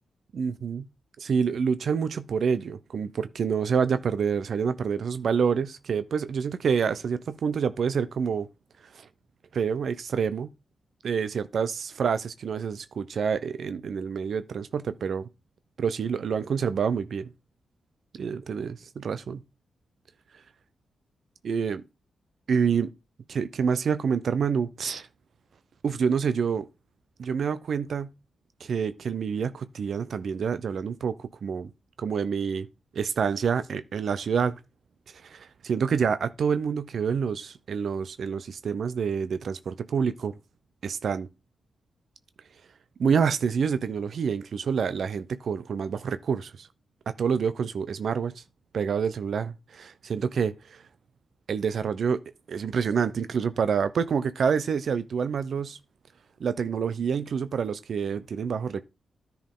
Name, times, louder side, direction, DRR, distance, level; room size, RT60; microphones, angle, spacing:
voice 1, 0.3-0.9 1.2-8.5 8.9-9.1 9.5-10.5 11.0-15.3 15.8-17.3 18.1-19.4 21.4-21.8 22.5-22.9 23.3-25.1 25.8-26.7 27.2-28.1 28.6-31.7 32.0-32.7 32.9-34.6 35.2-40.3 40.8-41.3 43.0-46.7 47.1-48.4 48.7-50.8 51.5-52.2 52.5-55.8 56.4-58.8, right 6 dB, 70° right, 0.5 m, -27 dB
10.5 x 4.6 x 3.6 m
cardioid pair, 70°, 0 cm